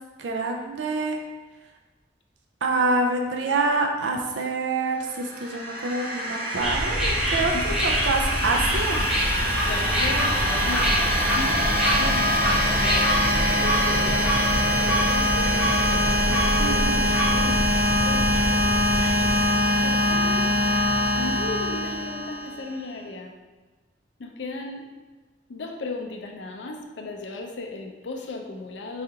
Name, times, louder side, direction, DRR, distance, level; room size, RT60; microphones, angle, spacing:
voice 1, 0.2-1.2 2.6-9.0 16.6-17.1, right 3 dB, 85° right, 2 dB, 0.4 m, -26 dB
sound 1, 5.1-22.7, left 1 dB, 50° right, 0.7 m, -24 dB
sound 2, 6.6-19.4, equal, 5° right, 0.6 m, -27 dB
voice 2, 9.7-14.4 14.8-18.6 19.8-20.5 21.1-23.3 24.2-24.9 25.5-29.0, left 2 dB, 75° left, 3 dB, 0.5 m, -36 dB
4.8 x 2.4 x 2.8 m, 1.3 s
head